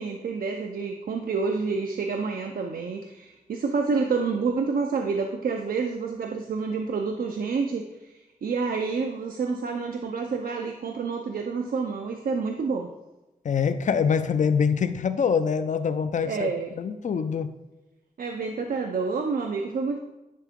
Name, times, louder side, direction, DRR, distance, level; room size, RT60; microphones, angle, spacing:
voice 1, 0.0-12.9 16.2-16.8 18.2-20.0, right 4 dB, 75° right, 3 dB, 0.5 m, -28 dB
voice 2, 13.4-16.5 16.8-17.5, left 6 dB, 55° left, 11 dB, 0.5 m, -24 dB
10.5 x 3.7 x 3.6 m, 1.0 s
wide cardioid pair, 110°, 15 cm